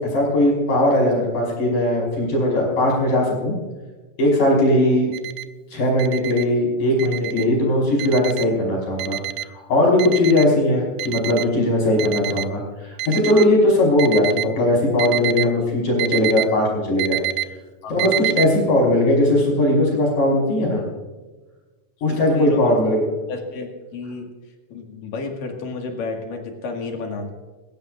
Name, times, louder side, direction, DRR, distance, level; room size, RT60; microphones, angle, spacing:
voice 1, 0.1-3.6 4.2-5.1 5.7-17.2 17.9-20.8 22.0-23.0, left 1 dB, 65° left, -2 dB, 6.9 m, -19 dB
Alarm, 5.1-5.4 6.0-6.4 7.0-7.4 8.0-8.5 9.0-9.5 10.0-10.5 11.0-11.5 12.0-12.5 13.0-13.5 14.0-14.5 15.0-15.4 16.0-16.4 17.0-17.4 18.0-18.5, right 14 dB, 80° right, 2.2 m, -26 dB
voice 2, 17.8-18.2 22.1-22.8 23.3-24.3 24.7-27.3, left 3 dB, 85° left, 3 dB, 3.7 m, -31 dB
22.0 x 16.0 x 2.6 m, 1.2 s
omnidirectional pair, 3.8 m